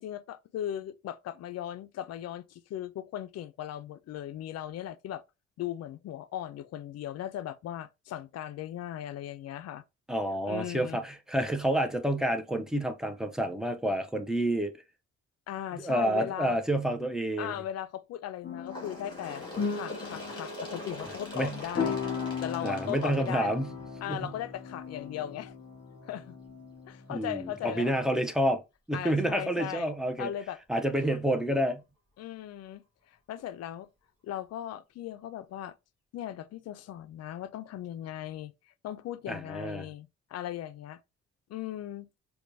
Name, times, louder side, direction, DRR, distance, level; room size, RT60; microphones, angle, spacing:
voice 1, 0.0-5.2 5.6-9.8 10.4-11.0 15.5-16.6 17.4-19.4 19.7-22.0 22.4-23.6 24.0-25.5 26.0-26.4 26.9-28.0 28.9-30.6 31.1-31.2 32.2-33.9 34.2-35.7 36.1-41.0 41.5-42.1, left 11 dB, 55° left, 0.4 m, -38 dB
voice 2, 10.1-14.7 15.8-17.5 21.3-21.6 22.6-23.7 24.1-24.3 27.1-28.6 28.9-30.3 30.7-31.8 39.3-39.9, right 1 dB, ahead, 0.5 m, -29 dB
sound 1, 18.4-28.1, left 5 dB, 35° left, 1.2 m, -38 dB
Bird, 18.7-24.1 25.0-25.1 25.5-25.6 26.5-26.6 27.5-27.6 28.4-28.5, left 1 dB, 15° left, 1.7 m, -43 dB
4.4 x 2.3 x 2.6 m
cardioid pair, 90°, 30 cm